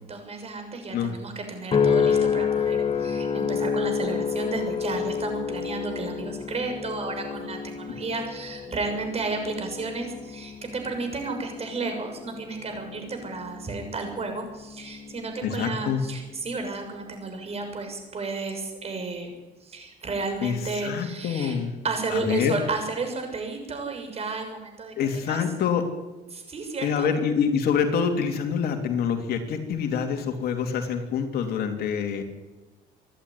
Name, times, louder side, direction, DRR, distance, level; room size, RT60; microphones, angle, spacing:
voice 1, 0.1-19.3 19.6-21.6 21.8-24.9 25.3-25.4 26.3-27.1, right 3 dB, 35° right, 5 dB, 6.6 m, -32 dB
sound 1, 1.7-16.2 16.7-17.1, left 6 dB, 35° left, 2.2 m, -29 dB
voice 2, 15.4-16.0 20.4-20.6 20.8-21.8 22.1-22.5 25.0-25.9 26.8-32.2, left 7 dB, 65° left, 5 dB, 3.3 m, -26 dB
26.5 x 11.5 x 10.0 m, 1.1 s
cardioid pair, 110°, 17 cm